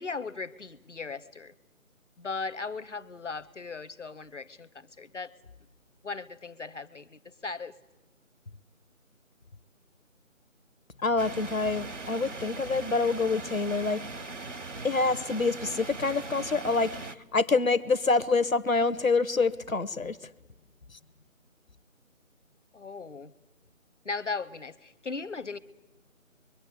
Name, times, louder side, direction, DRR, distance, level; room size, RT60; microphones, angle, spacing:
voice 1, 0.0-1.5 2.2-5.4 6.0-7.8 22.7-23.3 24.0-25.6, left 4 dB, 60° left, 15 dB, 1.0 m, -37 dB
voice 2, 11.0-14.0 14.8-20.2, left 3 dB, 75° left, 14 dB, 1.2 m, -26 dB
sound 1, 11.2-17.2, right 3 dB, 60° right, 1.0 m, -40 dB
26.0 x 23.5 x 8.4 m, 1.1 s
figure-of-eight pair, 160°, 41 cm